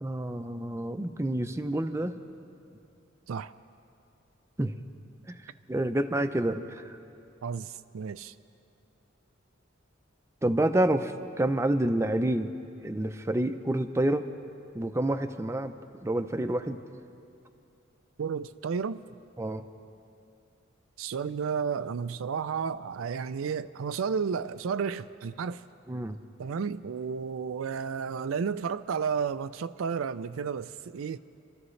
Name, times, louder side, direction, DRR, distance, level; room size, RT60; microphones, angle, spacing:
voice 1, 0.0-2.2 4.6-4.7 5.3-5.4 5.7-7.0 10.4-12.5 12.8-14.3 14.7-15.7 16.0-16.8 19.4-19.6 25.9-26.2, right 1 dB, 15° right, 0.5 m, -28 dB
voice 2, 7.4-8.3 18.2-19.0 21.0-25.6 26.4-31.2, right 6 dB, 90° right, 0.4 m, -32 dB
26.5 x 13.5 x 3.2 m
head